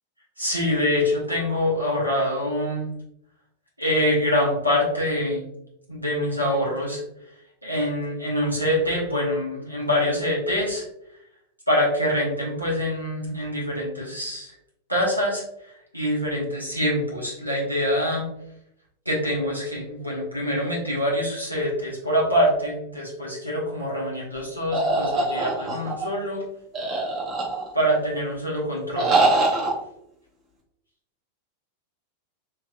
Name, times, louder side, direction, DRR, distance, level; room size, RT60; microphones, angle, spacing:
voice 1, 0.4-2.9 3.8-5.4 5.9-7.0 7.6-10.8 11.7-14.5 14.9-15.4 15.9-18.3 19.0-26.4 27.7-29.1, left 1 dB, 90° right, -4 dB, 1.0 m, -25 dB
sound 1, 24.7-26.0 26.7-27.9 28.9-29.7, right 2 dB, 30° right, 1.0 m, -23 dB
3.2 x 3.2 x 2.3 m, 0.77 s
figure-of-eight pair, 90°, 0 cm